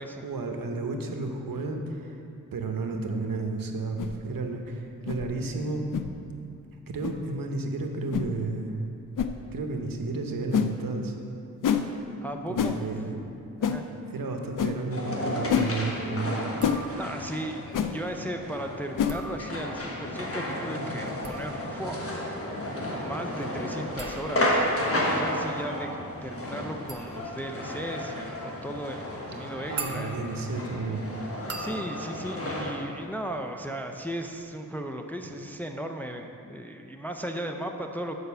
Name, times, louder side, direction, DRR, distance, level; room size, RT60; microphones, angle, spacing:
voice 1, 0.2-2.2 2.5-5.9 6.9-8.8 9.5-11.2 11.8-11.9 12.5-13.2 14.1-16.3 29.3-31.1, right 3 dB, 75° right, 3 dB, 0.9 m, -32 dB
sound 1, 4.0-4.2 5.1-5.2 5.9-6.1 7.0-7.2 8.1-8.3 9.2-9.3 10.5-10.7 11.6-11.8 12.6-12.8 13.6-13.8 14.6-14.7 15.5-15.7 16.6-16.8 17.7-17.9 19.0-19.2, left 8 dB, 65° left, 0.5 m, -26 dB
voice 2, 12.2-12.8 13.6-13.8 16.9-22.3 22.8-25.9 26.2-30.2 31.6-38.2, right 1 dB, 5° left, 3 dB, 0.4 m, -36 dB
sound 2, 14.9-32.7, left 1 dB, 40° left, 1.3 m, -32 dB
sound 3, 16.5-17.4 18.9-20.0 21.0-33.7 34.0-34.5, right 4 dB, 45° right, 0.7 m, -44 dB
6.7 x 5.2 x 6.8 m, 2.7 s
wide cardioid pair, 85°, 35 cm